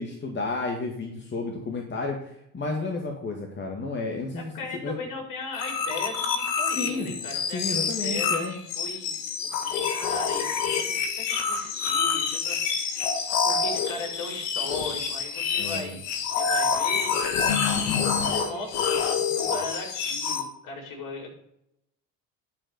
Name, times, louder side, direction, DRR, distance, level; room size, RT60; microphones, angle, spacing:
voice 1, 0.0-2.2 2.5-4.5 4.8-5.0 6.7-7.1 7.5-8.5 15.6-15.9, left 3 dB, 30° left, 1 dB, 2.1 m, -31 dB
voice 2, 4.3-9.2 9.6-13.2 13.4-17.1 18.0-21.3, left 3 dB, 60° left, 0 dB, 4.9 m, -38 dB
sound 1, 5.5-20.4, left 6 dB, 80° left, 1.7 m, -27 dB
11.0 x 5.2 x 6.8 m, 0.77 s
hypercardioid pair, 70°, 37 cm